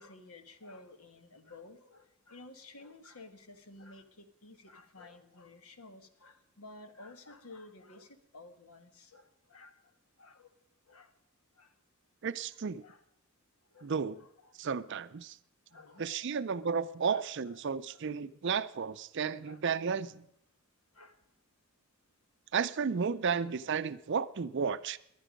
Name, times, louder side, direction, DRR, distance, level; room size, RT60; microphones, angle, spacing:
voice 1, 0.0-9.7 10.2-10.5 10.9-11.1 11.6-11.7 12.8-13.0 13.7-14.6 15.7-16.7 17.1-17.6 17.9-18.0 19.4-19.6 20.9-21.1 23.4-23.5 24.7-24.8, left 2 dB, 80° left, 8 dB, 1.4 m, -53 dB
voice 2, 12.2-12.8 13.8-14.2 14.6-15.4 16.0-20.2 22.5-25.0, right 6 dB, 55° right, 14 dB, 0.5 m, -33 dB
19.5 x 11.0 x 5.2 m, 0.78 s
head